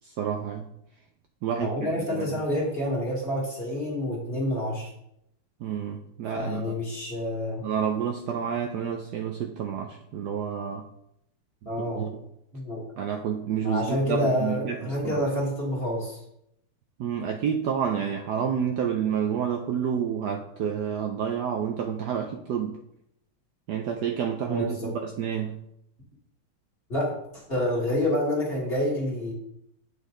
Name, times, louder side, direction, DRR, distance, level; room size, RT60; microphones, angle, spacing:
voice 1, 0.0-0.7 1.4-2.4 5.6-6.6 7.6-10.9 11.6-11.7 11.9-12.1 13.0-15.2 17.0-22.8 23.7-25.5, right 8 dB, 85° right, 3 dB, 0.9 m, -29 dB
voice 2, 1.6-4.9 6.3-7.7 11.7-12.1 12.5-12.9 13.6-16.2 24.5-24.9 26.9-29.3, left 1 dB, 25° left, -4 dB, 2.1 m, -28 dB
8.4 x 5.2 x 3.8 m, 0.76 s
omnidirectional pair, 2.4 m